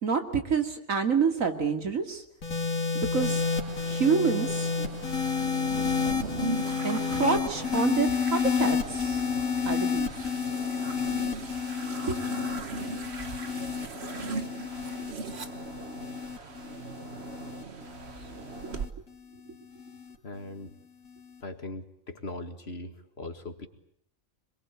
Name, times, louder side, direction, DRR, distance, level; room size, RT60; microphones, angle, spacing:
voice 1, 0.0-2.2 2.9-3.4 3.8-4.7 6.8-9.2 9.6-10.1 12.1-12.2, right 5 dB, 80° right, 6 dB, 2.8 m, -27 dB
sound 1, 2.4-18.9 19.8-20.1, left 5 dB, 85° left, 2.9 m, -30 dB
sound 2, 3.1-18.9, right 3 dB, 55° right, 1.7 m, -39 dB
voice 2, 20.2-20.7 21.4-23.7, left 2 dB, 50° left, 7 dB, 2.2 m, -40 dB
27.0 x 21.5 x 8.5 m, 0.67 s
omnidirectional pair, 1.4 m